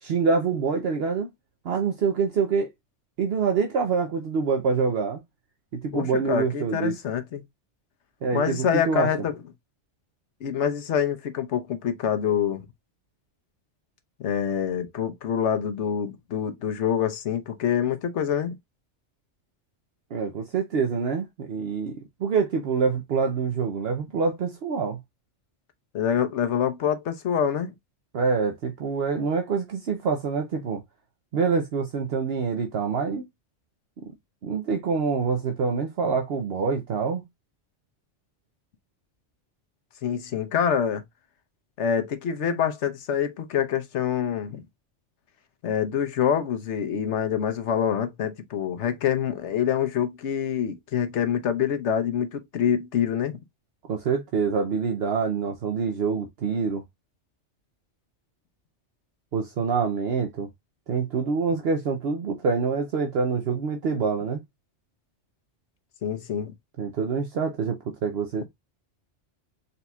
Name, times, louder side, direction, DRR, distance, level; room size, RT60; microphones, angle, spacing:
voice 1, 0.0-1.3 1.6-2.7 3.2-5.2 5.7-7.0 8.2-9.1 20.1-25.0 28.1-30.8 31.3-33.3 34.0-34.1 34.4-37.2 53.9-56.8 59.3-60.5 60.9-64.4 66.8-68.5, right 5 dB, 60° right, 0.9 m, -26 dB
voice 2, 5.9-7.4 8.3-9.3 10.4-12.7 14.2-18.6 25.9-27.7 40.0-41.0 41.8-44.6 45.6-53.4 66.0-66.5, left 8 dB, 75° left, 1.1 m, -26 dB
4.1 x 4.1 x 2.3 m
omnidirectional pair, 1.2 m